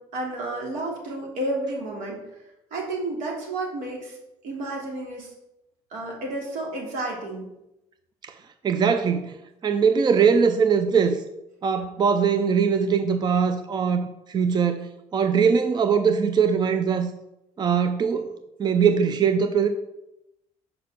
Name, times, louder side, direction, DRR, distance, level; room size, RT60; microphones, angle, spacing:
voice 1, 0.1-2.2 2.7-4.2 4.4-5.3 5.9-7.5, right 2 dB, 85° right, -2 dB, 3.1 m, -31 dB
voice 2, 8.6-9.4 9.6-11.2 11.6-17.1 17.6-18.3 18.6-19.7, right 6 dB, 35° right, 9 dB, 0.5 m, -21 dB
6.6 x 5.4 x 6.7 m, 0.90 s
cardioid pair, 125°, 13 cm